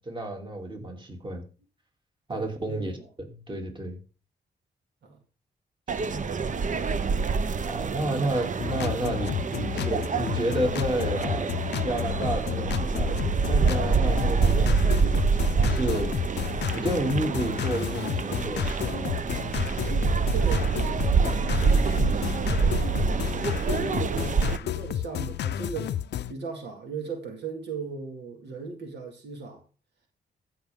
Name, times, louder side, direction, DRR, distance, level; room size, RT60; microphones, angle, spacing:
voice 1, 0.0-1.4 2.3-2.9 3.2-4.0 5.9-6.5 7.6-11.5 11.8-13.2 13.5-14.8 15.4-16.2 16.7-19.1, right 1 dB, 30° right, 2.9 m, -31 dB
voice 2, 2.3-3.1 5.0-5.2 14.7-14.9 20.0-25.9 26.3-29.6, right 5 dB, 80° right, 2.2 m, -38 dB
sound 1, 5.9-24.6, right 5 dB, 45° right, 0.7 m, -26 dB
sound 2, 8.6-26.3, left 11 dB, 80° left, 0.5 m, -31 dB
14.5 x 6.0 x 3.7 m
cardioid pair, 80°, 18 cm